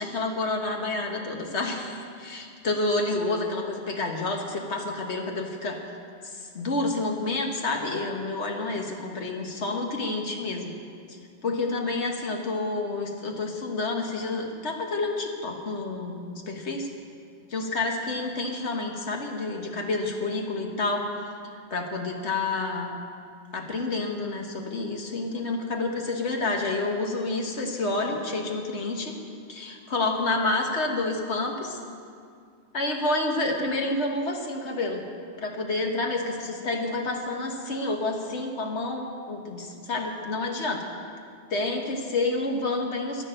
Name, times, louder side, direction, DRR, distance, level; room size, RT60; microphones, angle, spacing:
voice 1, 0.0-5.8 6.2-10.7 11.1-16.9 17.5-21.1 21.7-23.0 23.5-29.2 29.5-31.8 32.7-35.0 35.4-40.9 41.5-43.2, left 2 dB, 75° left, 2 dB, 1.8 m, -29 dB
11.0 x 11.0 x 8.9 m, 2.3 s
omnidirectional pair, 1.2 m